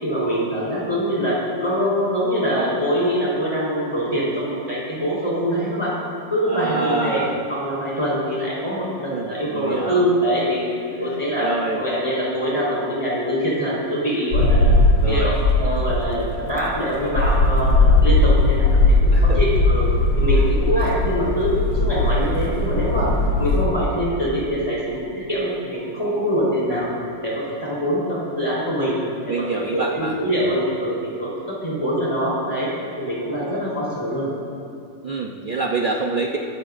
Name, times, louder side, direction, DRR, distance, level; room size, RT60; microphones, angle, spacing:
voice 1, 0.0-5.9 6.3-7.2 7.5-10.7 11.0-11.5 11.8-14.8 15.1-15.3 15.6-19.9 20.2-23.1 23.4-26.9 27.2-28.9 29.2-32.7 33.0-34.3, equal, 15° left, -7 dB, 4.1 m, -24 dB
voice 2, 6.5-7.4 9.1-10.1 11.0-11.8 15.0-15.3 19.1-19.4 20.3-20.4 29.3-30.1 35.0-36.4, right 3 dB, 50° right, 0 dB, 0.6 m, -26 dB
sound 1, 14.3-23.7, left 2 dB, 80° left, 1.9 m, -18 dB
21.5 x 14.0 x 2.6 m, 2.6 s
omnidirectional pair, 2.0 m